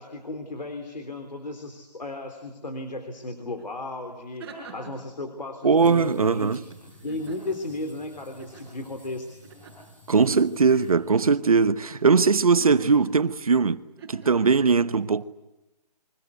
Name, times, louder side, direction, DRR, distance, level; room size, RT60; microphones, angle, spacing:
voice 1, 0.0-4.5 4.7-6.6 7.0-9.3, left 2 dB, 85° left, 3.5 m, -35 dB
sound 1, 3.6-3.7 4.1-5.1 6.9-7.7 8.4-8.7 9.4-9.9 10.6-10.9 12.4-13.4 14.0-14.5, right 4 dB, 10° right, 6.0 m, -44 dB
voice 2, 5.6-6.6 10.1-13.8 14.1-15.2, right 5 dB, 60° right, 1.1 m, -20 dB
sound 2, 5.7-13.6, equal, 5° left, 4.6 m, -52 dB
29.5 x 24.0 x 8.2 m
hypercardioid pair, 170°, 21 cm